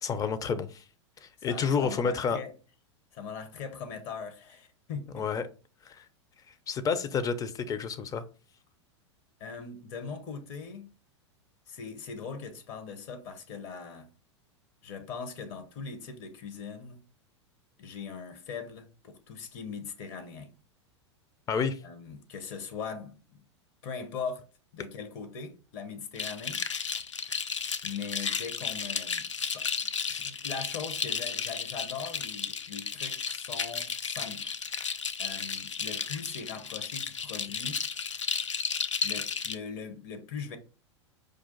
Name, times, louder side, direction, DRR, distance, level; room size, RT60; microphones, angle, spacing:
voice 1, 0.0-0.8 1.2-2.4 5.1-5.4 5.9-6.0 6.7-8.2 21.5-21.8, left 5 dB, 25° left, 0.5 m, -29 dB
voice 2, 1.4-2.5 3.1-5.3 9.4-10.9 11.7-14.1 14.8-17.0 17.8-20.5 21.8-23.4 23.8-24.5 24.7-26.6 27.8-29.7 30.0-34.5 35.2-37.8 39.0-40.6, left 5 dB, 45° left, 1.0 m, -40 dB
sound 1, 26.2-39.5, left 6 dB, 85° left, 0.4 m, -33 dB
5.0 x 2.5 x 3.7 m
figure-of-eight pair, 95°, 15 cm